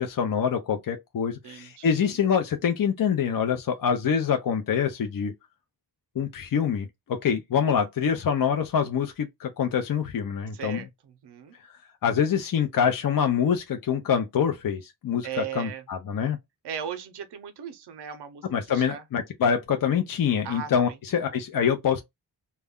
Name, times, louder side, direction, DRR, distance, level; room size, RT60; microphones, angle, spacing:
voice 1, 0.0-5.3 6.2-10.8 12.0-16.4 18.5-22.0, left 7 dB, 55° left, 0.6 m, -25 dB
voice 2, 1.4-2.2 10.5-10.9 11.2-11.5 15.2-15.8 16.6-19.0 20.4-21.0, right 8 dB, 85° right, 0.6 m, -37 dB
2.2 x 2.1 x 3.5 m
wide cardioid pair, 110°, 40 cm